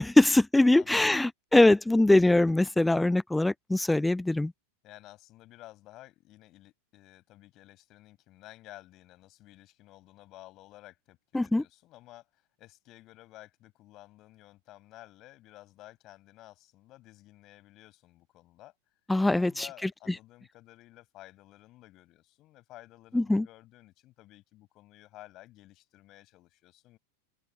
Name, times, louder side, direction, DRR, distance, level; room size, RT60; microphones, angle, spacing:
voice 1, 0.0-4.5 11.3-11.6 19.1-19.7 23.1-23.5, left 2 dB, 5° left, 0.5 m, -22 dB
voice 2, 0.7-1.2 4.8-27.0, left 17 dB, 35° left, 6.2 m, -53 dB
open air
figure-of-eight pair, 90°, 0 cm